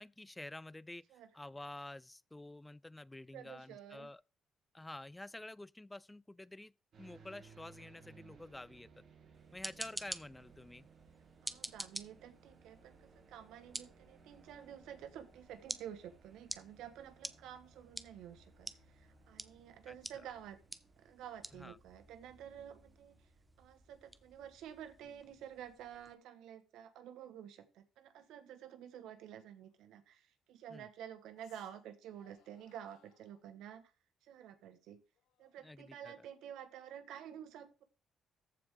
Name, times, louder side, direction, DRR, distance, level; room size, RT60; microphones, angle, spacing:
voice 1, 0.0-4.2 4.7-6.7 7.0-9.0 9.5-10.9 19.9-20.2 21.5-21.8 30.7-30.9 35.6-36.3, left 2 dB, 15° left, 0.3 m, -50 dB
voice 2, 3.3-4.1 11.4-20.6 21.0-23.3 23.6-33.9 34.2-35.0 35.4-37.8, right 9 dB, 90° right, 1.3 m, -51 dB
sound 1, 6.9-25.2, right 4 dB, 60° right, 3.2 m, -63 dB
sound 2, 9.3-26.1, right 1 dB, 10° right, 0.7 m, -50 dB
sound 3, 29.6-29.7 31.3-31.9 32.1-33.5 35.1-36.7, left 9 dB, 85° left, 1.2 m, -71 dB
14.0 x 4.8 x 3.6 m
cardioid pair, 90°, 0 cm